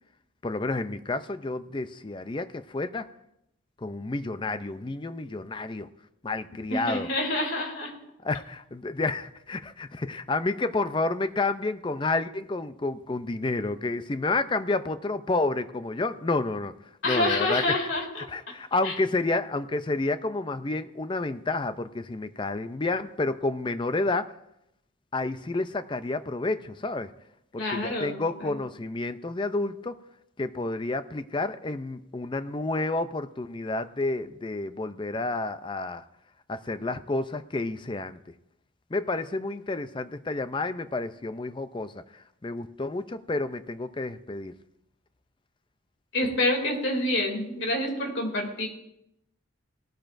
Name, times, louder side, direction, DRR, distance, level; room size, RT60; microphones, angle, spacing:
voice 1, 0.4-3.1 3.8-5.9 6.2-7.1 8.2-16.7 17.0-17.8 18.3-24.3 25.1-27.1 27.5-29.9 30.4-36.0 36.5-38.2 38.9-44.5, left 2 dB, 25° left, 12 dB, 0.4 m, -30 dB
voice 2, 6.7-7.9 17.0-18.2 18.8-18.9 27.6-28.5 46.1-48.7, left 1 dB, 60° left, 2 dB, 2.6 m, -27 dB
19.0 x 13.5 x 2.6 m, 0.83 s
head